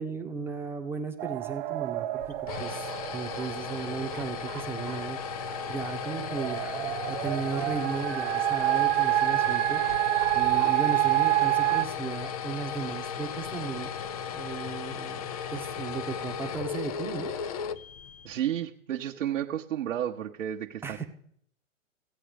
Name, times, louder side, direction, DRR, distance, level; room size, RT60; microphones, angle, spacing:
voice 1, 0.0-9.8 10.3-13.9 14.3-15.2 15.5-17.3 20.8-21.1, right 5 dB, 5° right, 3 dB, 1.0 m, -36 dB
Air Raid Siren, 1.2-11.8, right 16 dB, 35° right, 0.6 m, -28 dB
sound 1, 2.2-18.4, left 7 dB, 30° left, 0.4 m, -36 dB
voice 2, 18.2-21.1, right 11 dB, 70° right, -1 dB, 1.1 m, -32 dB
16.0 x 8.6 x 5.2 m, 0.68 s
hypercardioid pair, 135°, 39 cm